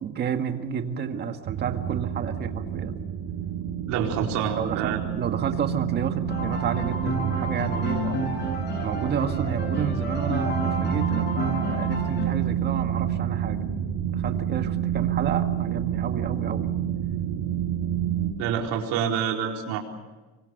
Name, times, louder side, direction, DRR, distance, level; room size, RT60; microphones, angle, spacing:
voice 1, 0.0-3.0 4.6-8.5 8.8-13.6 14.0-16.7, right 7 dB, 35° right, 6 dB, 1.9 m, -31 dB
sound 1, 1.4-18.3, right 10 dB, 50° right, 5.6 m, -28 dB
voice 2, 3.8-5.0 10.9-11.2 18.4-19.8, right 8 dB, 70° right, 1 dB, 4.5 m, -27 dB
sound 2, 6.3-12.3, equal, 35° left, 7.0 m, -31 dB
27.0 x 24.0 x 6.7 m, 1.2 s
cardioid pair, 155°, 30 cm